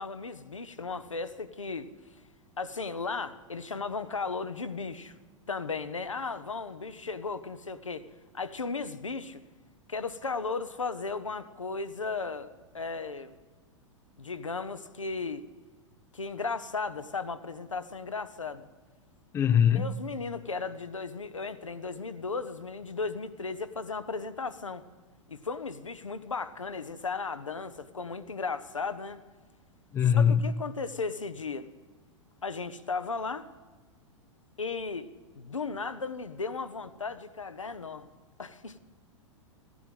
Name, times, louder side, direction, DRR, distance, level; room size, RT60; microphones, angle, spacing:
voice 1, 0.0-1.9 2.6-5.1 5.5-8.0 8.3-9.4 9.9-13.4 14.2-15.4 16.1-18.7 19.7-24.8 25.3-29.2 30.0-31.7 32.4-33.5 34.6-35.1 35.3-38.1 38.4-38.8, left 4 dB, 80° left, 0.8 m, -35 dB
voice 2, 19.3-20.0 29.9-30.4, left 8 dB, 15° left, 0.4 m, -22 dB
15.0 x 11.0 x 7.6 m
figure-of-eight pair, 95°, 16 cm